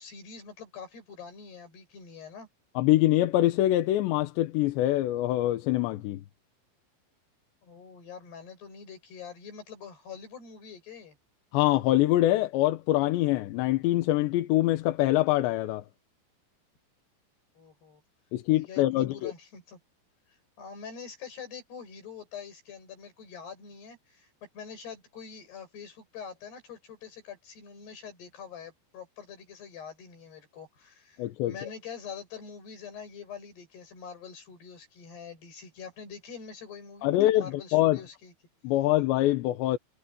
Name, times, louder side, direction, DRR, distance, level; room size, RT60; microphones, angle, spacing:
voice 1, 0.0-2.5 7.6-11.2 17.6-18.0 18.5-19.8 20.6-38.3, left 6 dB, 60° left, 8.4 m, -45 dB
voice 2, 2.8-6.2 11.5-15.8 18.3-19.3 31.2-31.7 37.0-37.5 37.7-38.0 38.6-39.8, left 15 dB, 75° left, 3.2 m, -24 dB
omnidirectional pair, 5.4 m